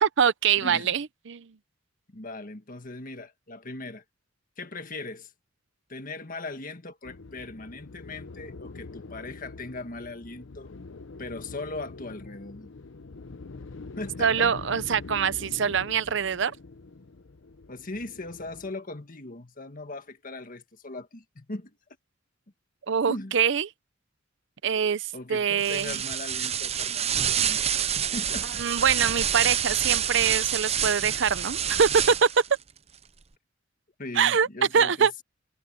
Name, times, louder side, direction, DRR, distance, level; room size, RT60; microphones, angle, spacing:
voice 1, 0.0-1.5 14.2-16.5 22.9-23.7 24.6-26.0 28.6-32.4 34.1-34.5 34.7-35.1, right 7 dB, 65° right, 0.7 m, -24 dB
voice 2, 0.6-0.9 2.1-4.0 4.6-5.3 5.9-10.7 11.2-12.7 14.0-14.5 17.7-21.8 23.1-23.3 25.1-27.6 28.0-28.6 34.0-35.2, left 2 dB, 45° left, 1.7 m, -39 dB
sound 1, 7.0-18.7, left 3 dB, 75° left, 0.7 m, -44 dB
sound 2, 25.6-32.5, right 9 dB, 35° right, 0.7 m, -27 dB
head